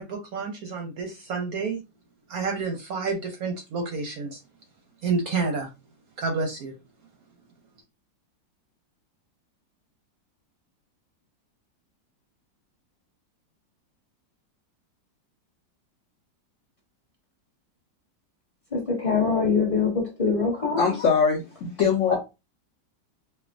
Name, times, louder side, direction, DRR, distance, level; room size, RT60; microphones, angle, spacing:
voice 1, 0.0-1.8 2.3-4.4 5.0-5.7 6.2-6.7, right 4 dB, 70° right, 0.9 m, -29 dB
voice 2, 18.7-20.8 22.1-22.2, left 5 dB, 25° left, 0.8 m, -23 dB
voice 3, 20.8-22.1, left 6 dB, 90° left, 0.6 m, -22 dB
4.4 x 2.1 x 2.5 m
omnidirectional pair, 2.0 m